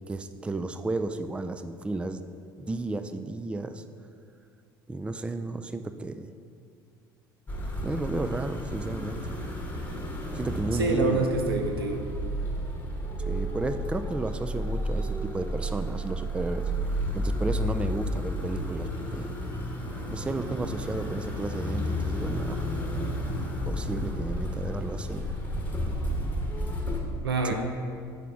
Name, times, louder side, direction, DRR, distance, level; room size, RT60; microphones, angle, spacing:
voice 1, 0.1-2.2 2.6-3.8 4.9-6.3 7.8-9.2 10.3-11.3 13.3-16.6 17.1-19.3 20.1-22.7 23.7-25.3 27.4-27.5, right 2 dB, 10° right, 10 dB, 0.4 m, -33 dB
sound 1, 7.5-27.0, equal, 15° left, 1.3 m, -32 dB
voice 2, 10.7-12.0 27.2-27.5, right 3 dB, 80° right, 3 dB, 0.8 m, -26 dB
9.0 x 5.8 x 3.6 m, 2.2 s
figure-of-eight pair, 65°, 12 cm